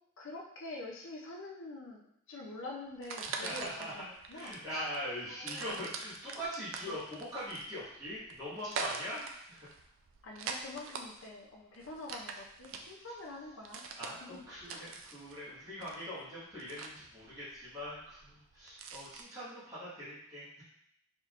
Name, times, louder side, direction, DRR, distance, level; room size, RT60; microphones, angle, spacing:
voice 1, 0.2-4.6 5.3-5.9 6.9-7.0 10.2-13.8 14.2-14.4 14.7-14.9, left 2 dB, 65° left, -1 dB, 0.5 m, -46 dB
sound 1, 2.9-19.2, right 4 dB, 70° right, 0.4 m, -44 dB
voice 2, 3.2-3.9 4.3-9.7 12.7-13.1 14.0-20.6, equal, 20° right, -12 dB, 1.4 m, -42 dB
4.2 x 3.6 x 2.5 m, 0.75 s
head